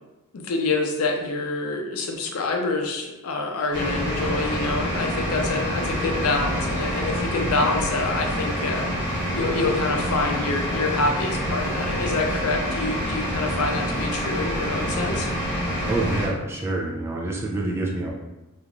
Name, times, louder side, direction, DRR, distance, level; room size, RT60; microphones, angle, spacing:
voice 1, 0.3-8.9 9.4-15.3, left 3 dB, 70° left, 2 dB, 0.4 m, -26 dB
sound 1, 3.7-16.3, equal, 20° left, 1.3 m, -27 dB
voice 2, 15.9-18.1, right 2 dB, 10° right, -2 dB, 0.3 m, -27 dB
2.9 x 2.4 x 2.5 m, 1.0 s
head